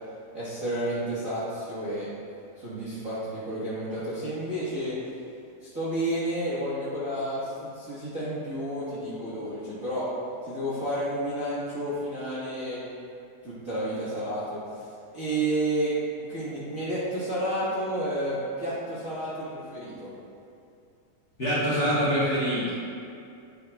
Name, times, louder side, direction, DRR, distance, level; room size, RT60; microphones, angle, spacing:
voice 1, 0.3-2.1 2.6-5.0 5.6-10.1 10.4-12.8 13.4-20.1, right 1 dB, 40° right, -10 dB, 1.3 m, -31 dB
voice 2, 21.4-22.7, equal, 45° left, -10 dB, 1.4 m, -24 dB
9.7 x 8.1 x 2.3 m, 2.5 s
omnidirectional pair, 3.5 m